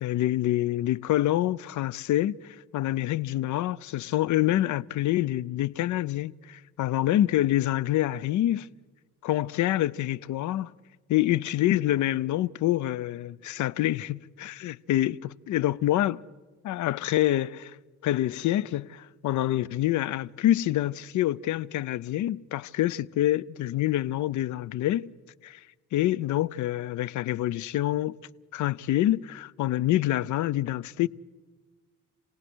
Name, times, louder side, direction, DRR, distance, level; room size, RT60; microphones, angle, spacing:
voice 1, 0.0-8.7 9.2-10.7 11.1-16.2 16.6-17.7 18.0-25.1 25.4-25.6 25.9-28.2 28.5-31.1, left 14 dB, 75° left, 0.6 m, -26 dB
28.5 x 18.0 x 6.3 m
cardioid pair, 90°, 30 cm